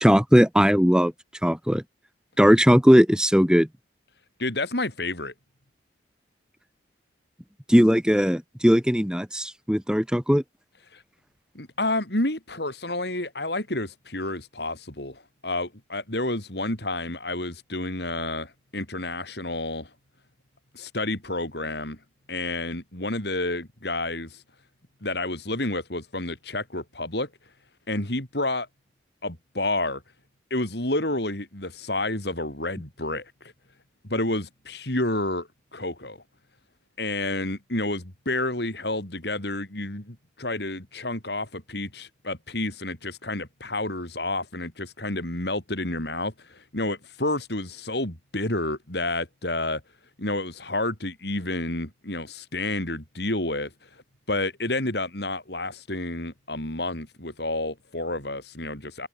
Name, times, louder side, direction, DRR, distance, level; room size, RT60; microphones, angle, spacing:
voice 1, 0.0-1.1 1.4-1.8 2.4-3.7 7.7-10.4, equal, 5° right, 1.4 m, -18 dB
voice 2, 4.4-5.3 10.9-11.0 11.5-19.9 20.7-22.0 22.3-24.4 25.0-27.3 27.9-28.7 29.2-30.0 30.5-33.5 34.0-36.2 37.0-49.8 50.2-53.7 54.3-59.1, left 2 dB, 60° left, 4.7 m, -30 dB
open air
head